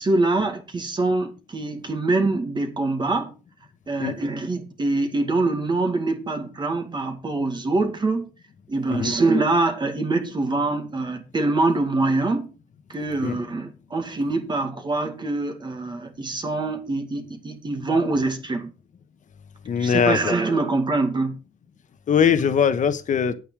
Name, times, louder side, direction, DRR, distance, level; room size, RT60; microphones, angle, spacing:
voice 1, 0.0-3.3 3.9-8.3 8.7-12.5 12.9-18.7 19.8-21.4, right 2 dB, 25° right, 2.2 m, -24 dB
voice 2, 19.6-20.3 22.1-23.3, left 7 dB, 50° left, 1.3 m, -21 dB
9.4 x 8.8 x 4.9 m
cardioid pair, 120°, 17 cm